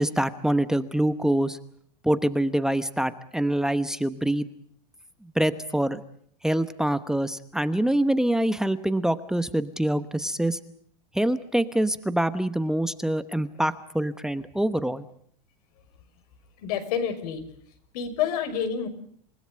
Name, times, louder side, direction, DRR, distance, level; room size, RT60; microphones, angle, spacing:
voice 1, 0.0-1.6 2.0-4.5 5.2-6.0 6.4-10.6 11.1-15.0, right 1 dB, 5° right, 12 dB, 1.0 m, -25 dB
voice 2, 16.6-17.4 17.9-18.9, left 8 dB, 70° left, 8 dB, 6.0 m, -28 dB
28.5 x 17.0 x 8.7 m, 0.62 s
supercardioid pair, 140°, 21 cm